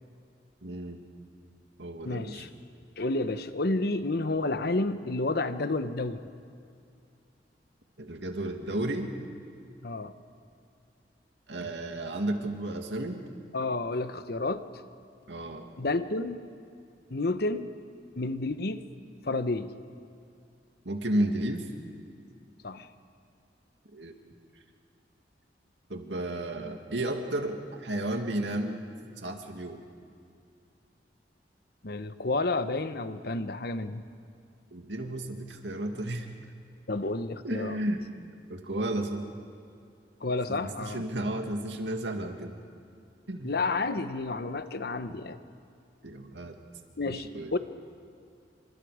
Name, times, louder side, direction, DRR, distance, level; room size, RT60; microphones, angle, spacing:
voice 1, 0.6-1.0 1.8-2.4 8.0-9.1 11.5-13.2 15.3-15.6 20.8-21.7 23.9-24.1 25.9-28.8 29.2-29.8 34.7-36.3 37.4-38.0 38.5-39.2 40.5-42.5 43.3-43.5 46.0-46.6 47.1-47.5, right 1 dB, 85° right, 4 dB, 2.3 m, -33 dB
voice 2, 2.0-2.5 3.0-6.2 9.8-10.1 13.5-14.8 15.8-16.4 17.1-17.7 18.2-18.8 19.2-19.7 22.6-22.9 31.8-34.0 36.9-37.8 40.2-41.0 43.4-45.4 47.0-47.6, left 2 dB, 60° left, 11 dB, 1.0 m, -30 dB
29.0 x 26.0 x 5.0 m, 2.4 s
head